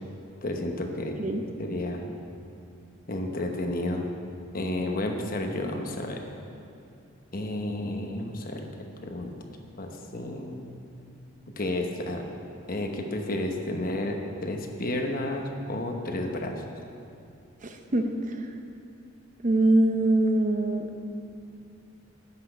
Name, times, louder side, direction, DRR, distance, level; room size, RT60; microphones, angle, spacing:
voice 1, 0.4-1.3 1.6-2.2 3.1-4.1 4.5-6.2 7.3-8.6 9.0-9.3 9.8-10.7 11.6-12.3 12.7-16.6, left 1 dB, 45° left, 3 dB, 1.0 m, -31 dB
voice 2, 17.6-18.5 19.4-20.9, right 1 dB, 35° right, 5 dB, 0.7 m, -23 dB
11.5 x 6.0 x 7.8 m, 2.6 s
head